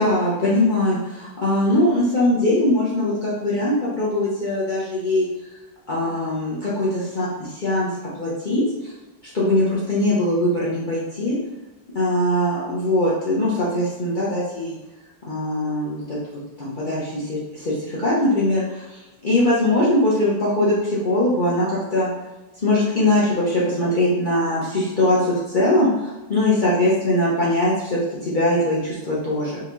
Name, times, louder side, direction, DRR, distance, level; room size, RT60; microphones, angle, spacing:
voice 1, 0.0-5.3 5.9-8.9 9.3-11.4 12.0-14.8 15.3-16.2 16.6-22.1 22.6-29.6, left 1 dB, 90° left, -8 dB, 0.4 m, -21 dB
3.7 x 3.4 x 3.1 m, 1.1 s
omnidirectional pair, 2.1 m